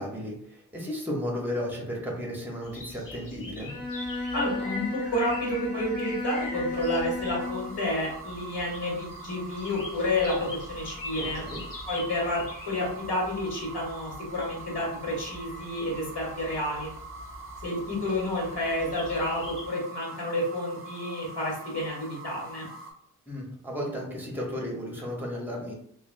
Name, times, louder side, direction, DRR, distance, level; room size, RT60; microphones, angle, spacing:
voice 1, 0.0-3.7 11.2-11.6 23.3-25.7, equal, 5° right, -2 dB, 0.8 m, -34 dB
sound 1, 2.6-19.7, left 3 dB, 55° left, 0.7 m, -44 dB
Bowed string instrument, 3.6-7.8, left 2 dB, 10° left, 1.1 m, -34 dB
voice 2, 4.3-11.5 11.9-16.9 17.6-22.6, left 1 dB, 75° left, -3 dB, 1.3 m, -30 dB
sound 2, 7.4-22.9, right 3 dB, 35° right, 0.5 m, -43 dB
3.2 x 2.2 x 2.5 m, 0.68 s
wide cardioid pair, 100°, 40 cm